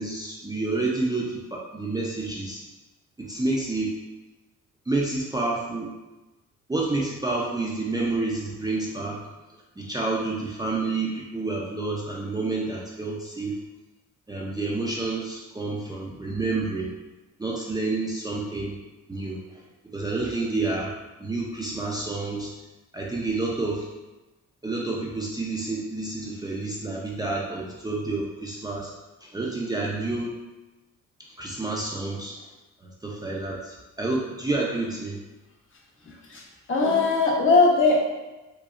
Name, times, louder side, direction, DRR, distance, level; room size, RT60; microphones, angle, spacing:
voice 1, 0.0-2.6 3.2-3.9 4.9-5.9 6.7-9.3 9.8-13.6 14.3-16.9 17.4-18.8 19.1-19.6 19.9-20.9 21.2-22.5 22.9-23.9 24.6-28.9 29.2-30.3 31.4-32.3 32.8-35.2, right 3 dB, 15° right, -4 dB, 0.5 m, -29 dB
voice 2, 36.1-36.4 36.7-38.0, left 3 dB, 45° left, -2 dB, 0.9 m, -20 dB
4.9 x 2.0 x 2.4 m, 1.1 s
cardioid pair, 90°, 30 cm